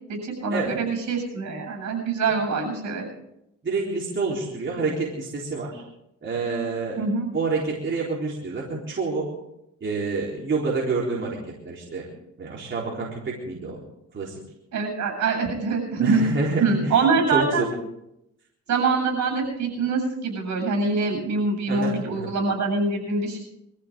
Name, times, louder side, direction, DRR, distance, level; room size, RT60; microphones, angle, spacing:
voice 1, 0.1-3.0 7.0-7.3 14.7-16.2 16.6-17.6 18.7-23.4, right 4 dB, 65° right, 2 dB, 7.9 m, -24 dB
voice 2, 3.6-5.8 6.2-7.0 7.3-9.3 9.8-11.4 11.6-12.1 12.4-13.8 14.1-14.4 16.0-17.7 21.7-22.3, right 3 dB, 40° right, -4 dB, 4.0 m, -28 dB
23.5 x 14.5 x 3.8 m, 0.83 s
cardioid pair, 90°, 30 cm